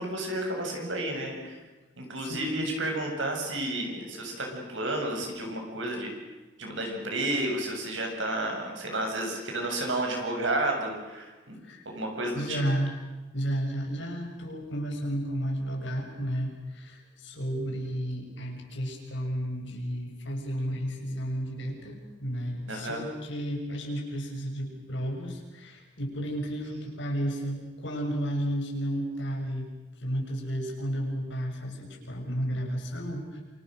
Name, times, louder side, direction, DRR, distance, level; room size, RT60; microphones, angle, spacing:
voice 1, 0.0-1.6 2.0-6.1 6.6-11.6 11.9-12.6 22.7-23.0, right 1 dB, 80° right, 2 dB, 7.5 m, -31 dB
voice 2, 2.2-2.7 11.6-11.8 12.3-12.9 13.3-29.7 30.0-33.4, equal, 75° left, 1 dB, 6.7 m, -32 dB
28.0 x 26.0 x 6.6 m, 1.2 s
head